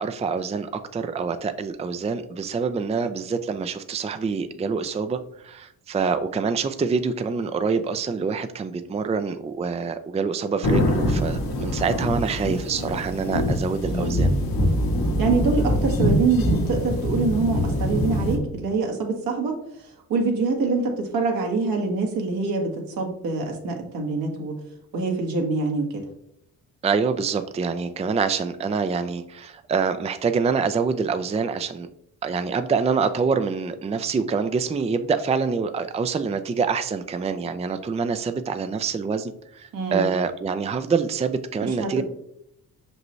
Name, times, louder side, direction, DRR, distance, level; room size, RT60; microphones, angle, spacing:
voice 1, 0.0-14.3 26.8-31.9 32.2-42.0, right 5 dB, 20° right, 10 dB, 0.4 m, -26 dB
sound 1, 10.6-18.4, equal, 75° left, 1.5 m, -24 dB
voice 2, 13.8-14.2 15.2-19.5 20.1-22.7 23.0-24.5 24.9-26.0 39.7-40.1 41.6-41.9, right 4 dB, 80° right, 1 dB, 1.6 m, -25 dB
5.8 x 5.3 x 3.1 m, 0.74 s
cardioid pair, 80°, 35 cm